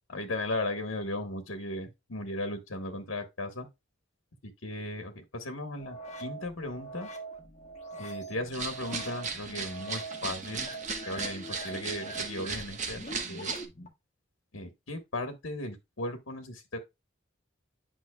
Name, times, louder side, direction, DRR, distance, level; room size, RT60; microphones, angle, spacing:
voice 1, 0.1-3.7 4.4-7.1 8.0-10.7 11.0-13.0 13.3-13.5 14.5-16.8, left 1 dB, 85° left, 1.4 m, -36 dB
sound 1, 5.8-13.9, right 2 dB, 35° left, 1.5 m, -43 dB
sound 2, 8.5-13.7, right 5 dB, 40° right, 1.1 m, -37 dB
9.2 x 5.6 x 2.3 m
head